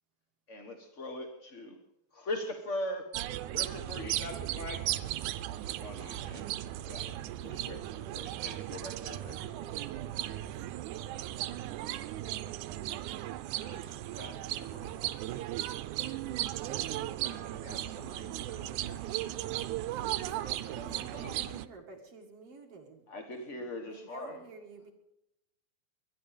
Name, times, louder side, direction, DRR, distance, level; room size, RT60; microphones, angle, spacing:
voice 1, 0.5-1.8 2.1-3.1 3.5-4.9 5.7-6.5 6.9-7.2 7.4-9.4 23.1-24.4, left 1 dB, 45° left, 5 dB, 0.9 m, -40 dB
sound 1, 3.1-21.7, right 14 dB, 85° right, 2.1 m, -36 dB
voice 2, 9.4-9.9 10.3-11.0 19.9-23.1 23.4-24.9, right 4 dB, 55° right, 2 dB, 2.8 m, -51 dB
voice 3, 13.5-15.0 15.3-15.5 17.2-19.7 20.7-21.6, right 1 dB, 20° left, 0 dB, 5.8 m, -50 dB
21.0 x 11.5 x 5.1 m, 0.84 s
omnidirectional pair, 3.5 m